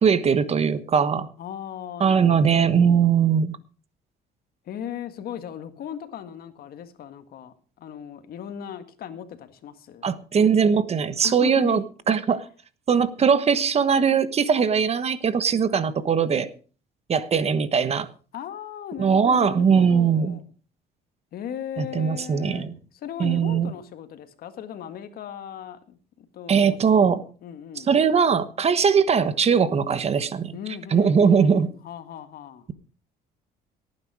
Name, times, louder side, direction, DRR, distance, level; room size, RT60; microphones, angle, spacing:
voice 1, 0.0-1.3 2.0-3.6 10.0-12.4 12.9-16.5 17.1-18.1 19.0-20.4 21.8-22.7 23.2-23.7 26.5-27.3 27.8-30.6 30.9-31.7, right 6 dB, 40° right, 1.2 m, -20 dB
voice 2, 1.4-3.1 4.7-10.1 11.2-11.8 18.3-20.4 21.3-22.7 23.0-27.9 30.5-32.7, left 9 dB, 65° left, 1.8 m, -37 dB
18.0 x 9.8 x 4.8 m
cardioid pair, 110°, 17 cm